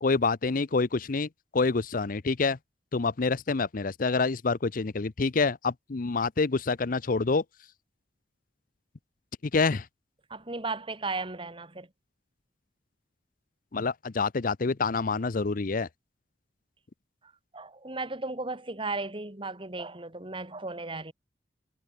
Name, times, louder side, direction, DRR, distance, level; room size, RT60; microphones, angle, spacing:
voice 1, 0.0-2.6 2.9-7.4 9.4-9.9 13.7-15.9, left 4 dB, 50° left, 0.6 m, -27 dB
voice 2, 10.3-11.9 17.5-21.1, right 3 dB, 30° right, 2.6 m, -35 dB
head